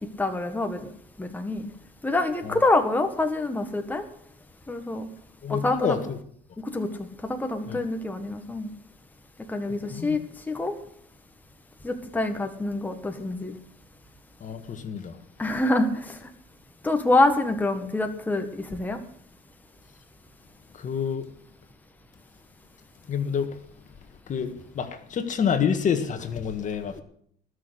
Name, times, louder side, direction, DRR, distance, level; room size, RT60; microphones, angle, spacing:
voice 1, 0.2-0.8 1.2-1.7 2.0-4.0 4.7-5.1 5.5-6.0 6.6-8.7 9.5-10.7 11.8-13.5 15.4-16.3 16.8-19.0 26.9-27.0, left 2 dB, 10° left, 1.5 m, -26 dB
voice 2, 5.4-6.2 7.7-7.8 9.7-10.2 14.4-15.2 20.7-21.3 23.1-23.6 24.3-27.0, left 7 dB, 45° left, 1.7 m, -28 dB
19.5 x 6.5 x 8.2 m
cardioid pair, 110°, 17 cm